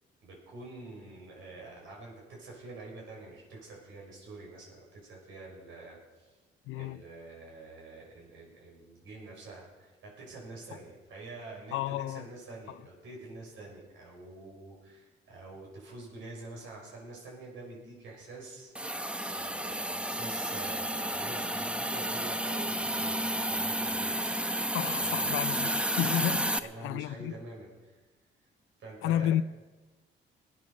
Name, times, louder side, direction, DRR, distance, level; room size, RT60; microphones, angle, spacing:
voice 1, 0.2-6.3 6.7-18.7 19.2-25.7 26.5-28.0 28.8-29.3, right 2 dB, 80° right, 6.1 m, -47 dB
voice 2, 6.7-7.0 11.7-12.3 24.7-27.3 29.0-29.4, left 12 dB, 90° left, 0.5 m, -31 dB
Hiss, 18.8-26.6, right 1 dB, 5° right, 0.8 m, -31 dB
19.0 x 9.6 x 6.4 m
cardioid pair, 90°, 20 cm